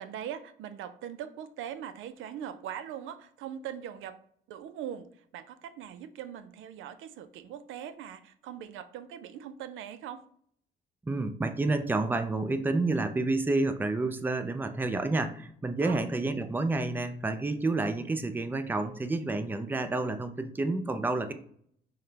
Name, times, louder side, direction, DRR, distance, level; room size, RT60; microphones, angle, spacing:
voice 1, 0.0-4.2 4.5-10.2 15.8-16.1, right 9 dB, 80° right, 12 dB, 0.4 m, -41 dB
voice 2, 11.1-21.3, right 2 dB, 10° right, 9 dB, 0.4 m, -29 dB
5.5 x 2.2 x 3.3 m, 0.63 s
cardioid pair, 90°, 20 cm